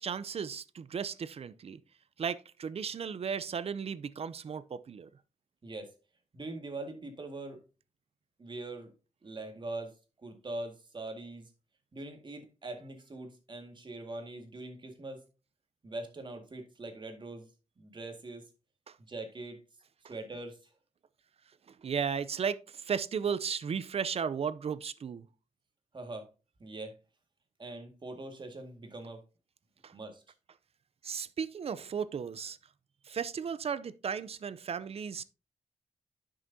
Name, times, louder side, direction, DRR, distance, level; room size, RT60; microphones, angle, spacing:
voice 1, 0.0-1.8 2.2-5.1 18.9-19.0 21.7-25.3 29.8-29.9 31.0-32.6 33.1-35.2, right 7 dB, 60° right, 0.6 m, -35 dB
voice 2, 6.3-7.6 8.4-8.9 9.2-9.9 10.2-11.5 11.9-15.2 15.8-17.5 17.8-18.4 19.0-19.6 20.1-20.6 25.9-26.3 26.6-27.0 27.6-29.2 29.9-30.2, right 2 dB, 40° right, 1.9 m, -42 dB
10.5 x 6.3 x 2.7 m
cardioid pair, 90°, 12 cm